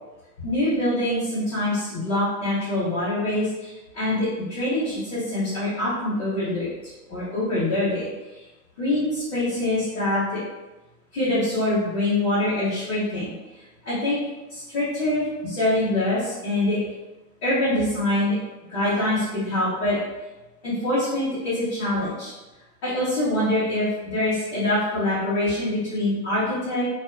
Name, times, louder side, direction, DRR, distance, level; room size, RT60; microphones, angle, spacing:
voice 1, 0.4-8.4 8.8-10.4 11.1-13.3 13.8-14.2 14.5-16.8 17.4-18.4 18.7-20.0 20.6-22.3 22.8-26.9, left 1 dB, 20° left, -13 dB, 0.5 m, -24 dB
2.3 x 2.2 x 2.9 m, 1.1 s
hypercardioid pair, 150°, 49 cm